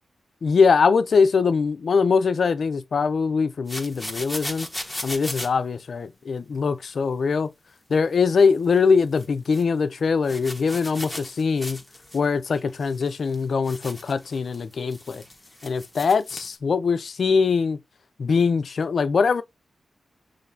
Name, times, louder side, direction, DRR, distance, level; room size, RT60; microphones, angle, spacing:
voice 1, 0.4-4.7 5.0-7.5 7.9-11.8 12.1-15.2 15.6-17.8 18.2-19.4, left 5 dB, 60° left, 0.5 m, -22 dB
sound 1, 3.7-5.5 8.6-8.8 9.1-9.6 10.2-12.2 12.5-16.6, left 1 dB, 5° left, 1.1 m, -37 dB
5.8 x 3.2 x 2.7 m
wide cardioid pair, 105°, 0 cm